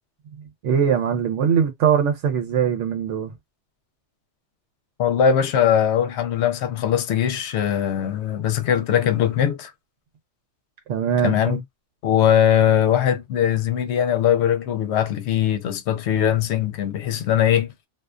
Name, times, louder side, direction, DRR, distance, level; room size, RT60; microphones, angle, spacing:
voice 1, 0.3-3.3 10.9-11.6, right 7 dB, 90° right, 1.0 m, -22 dB
voice 2, 5.0-9.7 11.2-11.6 12.0-17.7, left 9 dB, 70° left, 0.8 m, -20 dB
2.4 x 2.2 x 2.4 m
omnidirectional pair, 1.2 m